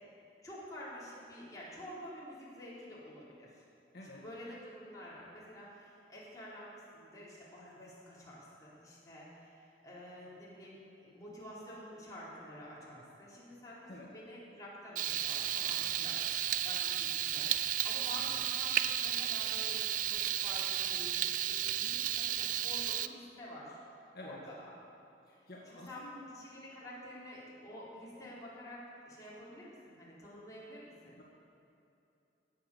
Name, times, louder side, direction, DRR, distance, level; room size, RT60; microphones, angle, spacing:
voice 1, 0.4-3.6 4.2-16.3 16.6-23.8 24.2-24.7 25.7-31.2, left 1 dB, 20° left, -8 dB, 4.0 m, -49 dB
voice 2, 3.9-4.2 13.9-14.1 18.2-18.4 24.1-24.4 25.3-26.2 31.2-31.3, left 2 dB, 60° left, -4 dB, 1.7 m, -50 dB
Frying (food), 15.0-23.1, right 11 dB, 45° right, 0.3 m, -33 dB
17.0 x 8.1 x 6.9 m, 2.8 s
head